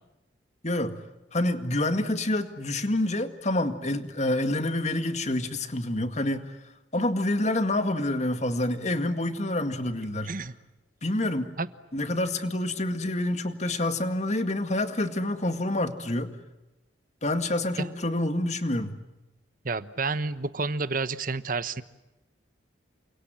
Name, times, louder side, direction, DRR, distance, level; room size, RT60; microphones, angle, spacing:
voice 1, 0.6-1.0 1.3-6.6 6.9-10.3 11.0-11.5 11.9-16.3 17.2-19.0, left 1 dB, 40° left, 8 dB, 2.1 m, -27 dB
voice 2, 19.6-21.8, right 3 dB, 45° right, 13 dB, 1.1 m, -30 dB
29.5 x 26.5 x 7.7 m, 0.99 s
head